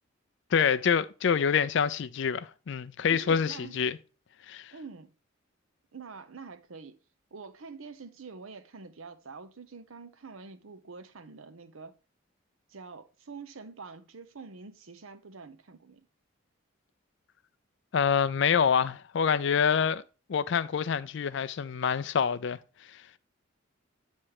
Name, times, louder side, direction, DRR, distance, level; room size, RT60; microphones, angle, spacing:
voice 1, 0.5-4.0 4.5-4.7 17.9-20.0 20.3-22.6, left 7 dB, 60° left, 0.4 m, -26 dB
voice 2, 3.1-3.8 4.7-5.1 5.9-7.0 7.3-11.9 12.7-16.1, right 4 dB, 80° right, 0.7 m, -46 dB
8.6 x 3.2 x 4.6 m
head